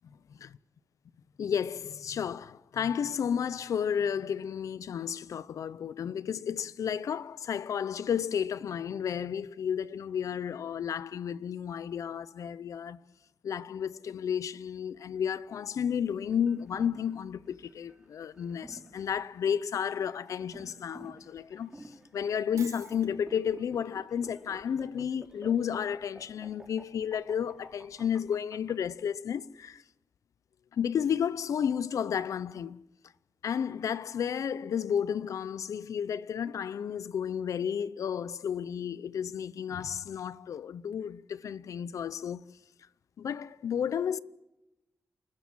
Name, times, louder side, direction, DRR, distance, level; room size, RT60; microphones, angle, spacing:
voice 1, 1.4-13.0 13.4-29.8 30.7-32.8 33.4-42.4 43.2-44.2, left 8 dB, 85° left, 0.6 m, -32 dB
sound 1, 16.3-28.7, right 1 dB, 10° right, 3.4 m, -51 dB
Shatter, 22.6-23.1, right 6 dB, 75° right, 1.6 m, -47 dB
29.0 x 13.5 x 7.5 m
wide cardioid pair, 95°, 5 cm